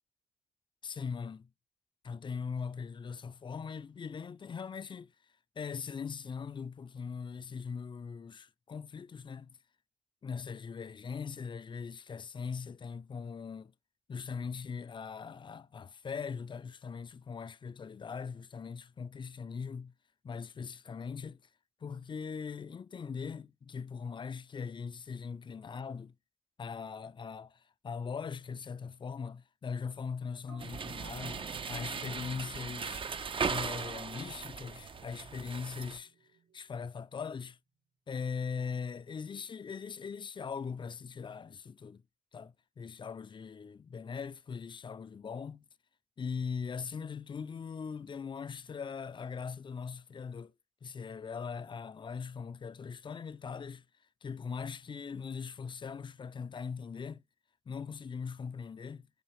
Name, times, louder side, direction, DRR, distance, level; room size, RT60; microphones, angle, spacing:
voice 1, 0.8-1.5 2.0-5.1 5.6-9.5 10.2-13.7 14.1-19.9 20.2-21.4 21.8-26.1 26.6-33.0 33.5-36.1 36.5-37.6 38.1-42.0 42.3-45.7 46.2-50.5 50.8-53.8 54.2-57.2 57.7-59.1, left 6 dB, 35° left, 0.3 m, -40 dB
sound 1, 30.4-37.4 37.7-37.8, right 5 dB, 80° right, 1.5 m, -63 dB
sound 2, 30.6-36.0, right 5 dB, 35° right, 0.4 m, -38 dB
6.4 x 2.4 x 3.1 m
supercardioid pair, 50°, 15 cm